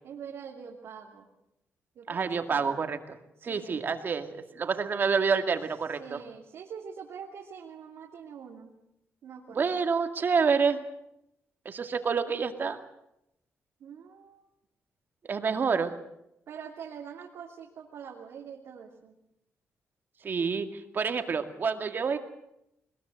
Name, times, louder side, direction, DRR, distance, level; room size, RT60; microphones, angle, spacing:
voice 1, 0.0-1.3 2.0-2.8 3.5-3.8 6.0-8.7 9.2-9.8 13.8-14.4 16.5-19.1, right 7 dB, 80° right, -1 dB, 2.8 m, -44 dB
voice 2, 2.1-3.2 3.4-6.2 9.5-10.8 11.7-12.8 15.3-15.9 20.2-22.2, right 5 dB, 45° right, 7 dB, 2.1 m, -28 dB
21.0 x 21.0 x 7.7 m, 0.83 s
cardioid pair, 115°, 5 cm